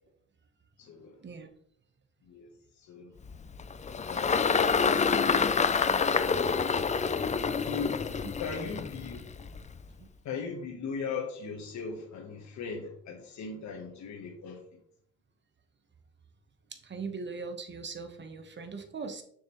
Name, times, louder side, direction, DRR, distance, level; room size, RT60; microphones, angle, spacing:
voice 1, 0.8-1.2 2.2-2.5 2.8-3.1 4.0-5.8 7.6-8.0 8.4-9.3 10.2-14.8, left 5 dB, 70° left, -1 dB, 1.3 m, -39 dB
Engine, 3.3-9.9, left 5 dB, 25° left, 0.5 m, -27 dB
voice 2, 16.7-19.2, right 4 dB, 35° right, 7 dB, 1.2 m, -40 dB
6.6 x 6.4 x 3.1 m, 0.66 s
cardioid pair, 90°, 30 cm